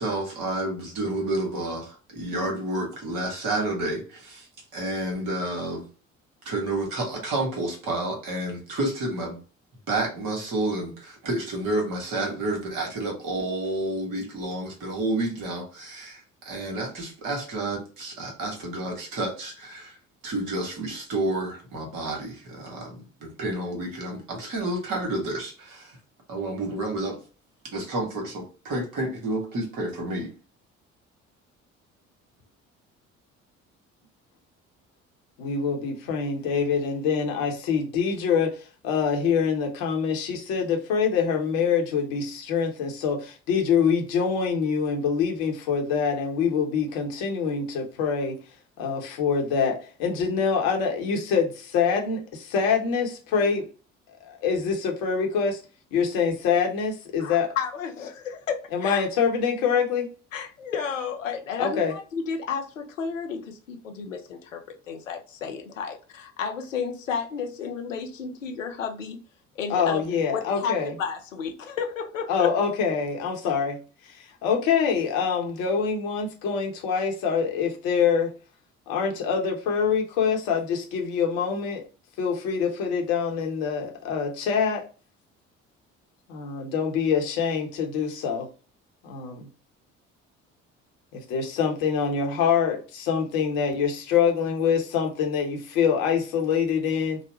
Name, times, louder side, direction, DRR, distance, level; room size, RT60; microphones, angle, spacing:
voice 1, 0.0-4.4 4.7-5.8 6.4-9.4 9.9-16.2 16.4-19.9 20.2-25.9 26.3-27.2 27.7-30.3, right 2 dB, 55° right, 1.6 m, -30 dB
voice 2, 35.4-48.4 48.8-53.7 54.2-55.6 55.9-57.5 58.7-60.1 61.6-61.9 69.7-70.9 72.3-73.8 74.0-78.3 78.9-81.8 82.2-84.8 86.3-88.5 89.0-89.5 91.1-97.2, left 6 dB, 65° left, 1.0 m, -25 dB
voice 3, 57.2-59.0 60.3-69.2 69.6-70.0 70.3-72.5, left 6 dB, 90° left, 0.6 m, -32 dB
3.9 x 2.1 x 2.9 m
figure-of-eight pair, 50°, 38 cm